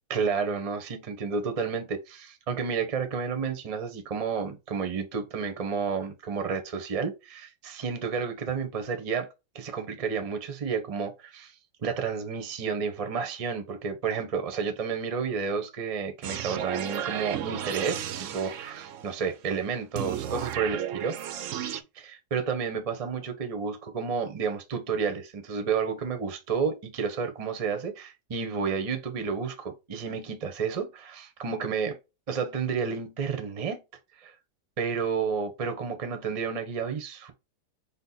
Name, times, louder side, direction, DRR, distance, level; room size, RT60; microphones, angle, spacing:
voice 1, 0.1-9.3 9.5-11.5 11.8-18.0 18.3-21.2 21.9-32.0 32.3-33.8 34.2-34.3 34.8-37.3, right 5 dB, 40° right, 0.5 m, -31 dB
sound 1, 16.2-19.2 20.0-21.8, right 10 dB, 70° right, 0.7 m, -34 dB
5.2 x 2.2 x 3.9 m
omnidirectional pair, 1.8 m